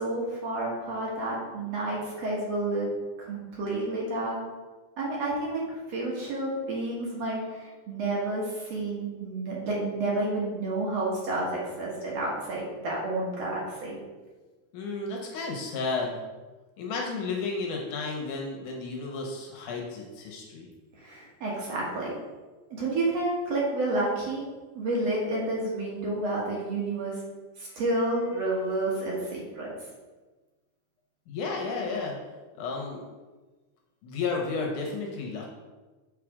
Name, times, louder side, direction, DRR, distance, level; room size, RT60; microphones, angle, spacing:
voice 1, 0.0-2.9 3.2-4.4 5.0-14.0 21.0-22.1 22.8-24.4 24.7-27.2 27.6-29.7, right 2 dB, 55° right, -4 dB, 2.4 m, -30 dB
voice 2, 14.7-16.2 16.8-20.7 27.7-27.8 31.3-32.1 32.5-33.0 34.0-35.5, left 4 dB, 75° left, 0 dB, 2.3 m, -32 dB
6.8 x 4.8 x 4.9 m, 1.3 s
omnidirectional pair, 3.8 m